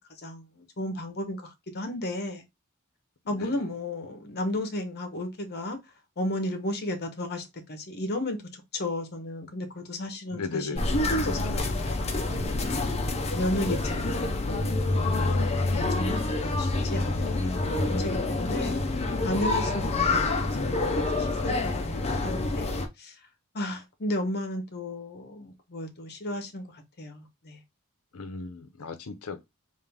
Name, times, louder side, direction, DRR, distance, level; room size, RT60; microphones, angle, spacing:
voice 1, 0.2-2.4 3.3-5.8 6.2-12.1 13.3-18.8 19.2-22.7 23.0-23.1 23.5-27.6, left 1 dB, 50° left, 1.0 m, -34 dB
voice 2, 3.3-3.6 10.3-10.8 11.5-11.7 13.0-13.4 28.1-29.4, left 4 dB, 80° left, 0.7 m, -37 dB
sound 1, 10.8-22.9, left 2 dB, 30° left, 0.7 m, -27 dB
3.7 x 2.6 x 3.4 m
head